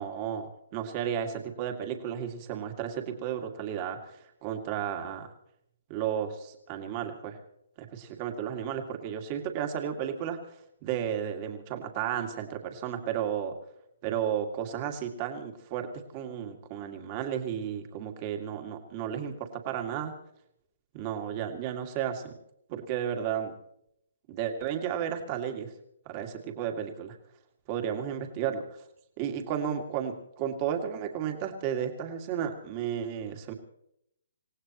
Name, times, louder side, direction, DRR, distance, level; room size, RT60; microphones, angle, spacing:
voice 1, 0.0-5.3 5.9-7.4 7.8-13.5 14.0-15.9 16.1-20.1 20.9-22.3 22.7-23.5 24.3-25.7 26.1-27.1 27.7-28.8 29.2-33.5, right 9 dB, 30° right, 4 dB, 2.2 m, -33 dB
27.5 x 16.5 x 3.1 m, 0.77 s
hypercardioid pair, 155°, 0 cm